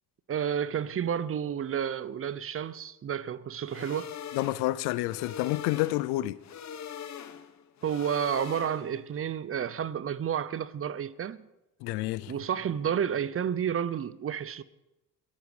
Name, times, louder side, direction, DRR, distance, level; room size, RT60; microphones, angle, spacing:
voice 1, 0.3-4.1 7.8-11.5 12.3-14.6, right 8 dB, 35° right, 0.7 m, -31 dB
sound 1, 3.7-9.1, left 8 dB, 45° left, 1.1 m, -42 dB
voice 2, 4.3-6.4 11.8-12.4, left 17 dB, 80° left, 0.6 m, -29 dB
22.5 x 8.4 x 5.0 m
supercardioid pair, 80°, 38 cm